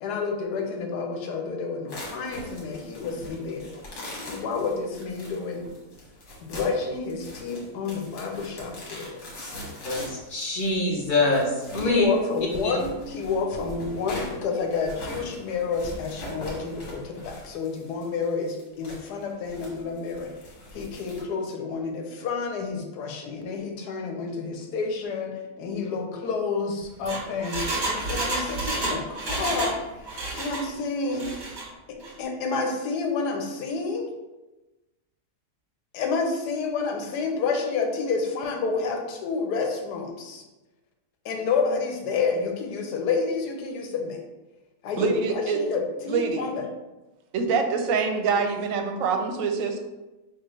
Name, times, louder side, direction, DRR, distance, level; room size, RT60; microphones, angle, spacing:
voice 1, 0.0-3.7 4.3-5.7 6.4-9.2 11.8-20.3 20.7-30.1 30.4-31.3 31.9-34.1 35.9-40.4 41.2-44.2 44.8-46.7, left 4 dB, 90° left, 1.2 m, -29 dB
sound 1, 1.9-21.2, left 1 dB, 70° left, 1.7 m, -41 dB
voice 2, 9.8-12.0 12.6-12.7, left 2 dB, 55° left, 0.5 m, -24 dB
Engine, 26.8-29.8 30.0-30.7 31.1-31.7 32.0-32.1, right 2 dB, 40° right, 0.8 m, -30 dB
voice 3, 45.0-45.6 46.1-46.5 47.3-49.8, right 5 dB, 70° right, 0.9 m, -25 dB
6.1 x 2.4 x 3.1 m
omnidirectional pair, 1.7 m